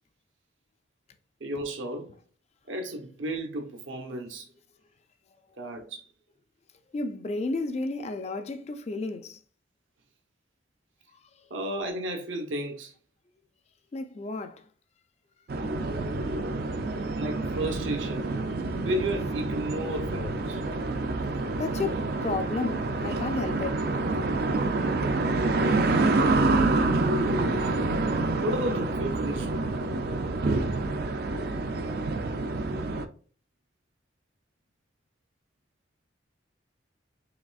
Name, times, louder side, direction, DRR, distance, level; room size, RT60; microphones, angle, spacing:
voice 1, 1.4-2.1 2.7-4.5 5.6-6.1 11.5-12.9 17.2-18.3 18.8-20.6 27.0-27.8 28.4-29.7, right 1 dB, 80° right, 0.9 m, -32 dB
voice 2, 6.9-9.4 13.9-14.6 21.1-21.2 21.5-24.1, left 3 dB, 35° left, 0.3 m, -32 dB
sound 1, 15.5-33.1, right 2 dB, 50° right, 0.4 m, -27 dB
5.0 x 3.3 x 2.3 m
head